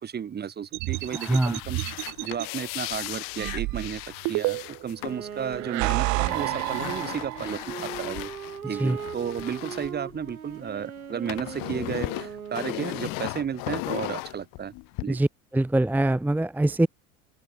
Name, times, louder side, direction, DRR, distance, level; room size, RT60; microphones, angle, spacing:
voice 1, 0.0-1.8 2.2-4.0 4.3-8.3 8.6-14.7 15.0-15.2, right 8 dB, 25° right, 1.4 m, -33 dB
sound 1, 0.7-2.5 3.4-4.9 5.5-7.7, right 25 dB, 45° right, 0.8 m, -29 dB
sound 2, 0.9-10.7 11.0-15.0, left 26 dB, 50° left, 2.3 m, -37 dB
voice 2, 1.1-1.6 8.8-9.0 15.1-16.9, right 1 dB, 5° right, 1.0 m, -24 dB
Wind instrument woodwind instrument, 5.0-13.3, right 8 dB, 85° right, 2.2 m, -39 dB
figure-of-eight pair, 80°, 42 cm